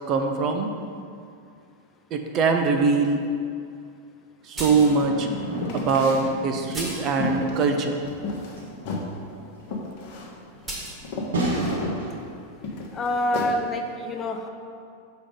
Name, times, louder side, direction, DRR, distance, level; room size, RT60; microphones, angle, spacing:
voice 1, 0.1-0.7 2.1-3.2 4.5-5.3 5.7-8.0, right 4 dB, 35° right, 5 dB, 0.6 m, -22 dB
sound 1, 4.5-12.2, right 1 dB, 70° right, 1.5 m, -33 dB
sound 2, 4.6-5.0 5.8-5.9 6.7-7.2 10.7-11.0, right 1 dB, 15° right, 1.6 m, -34 dB
sound 3, 5.5-6.2 6.7-8.6 8.8-9.1 9.7-10.3 10.7-10.8 11.0-12.0 12.6-13.5, left 3 dB, 45° left, 1.1 m, -33 dB
voice 2, 12.9-14.5, left 1 dB, 25° left, 4 dB, 0.6 m, -26 dB
6.3 x 5.0 x 5.2 m, 2.4 s
figure-of-eight pair, 90°, 0 cm